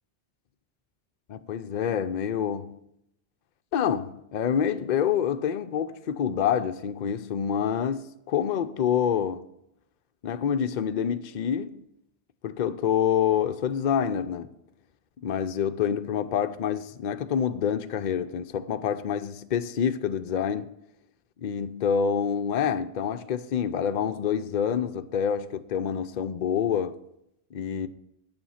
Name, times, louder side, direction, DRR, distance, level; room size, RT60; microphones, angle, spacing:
voice 1, 1.3-2.7 3.7-9.4 10.2-11.8 12.4-14.5 15.2-20.7 21.4-27.0 27.5-27.9, left 8 dB, 55° left, 0.6 m, -27 dB
9.0 x 8.9 x 5.6 m
omnidirectional pair, 1.1 m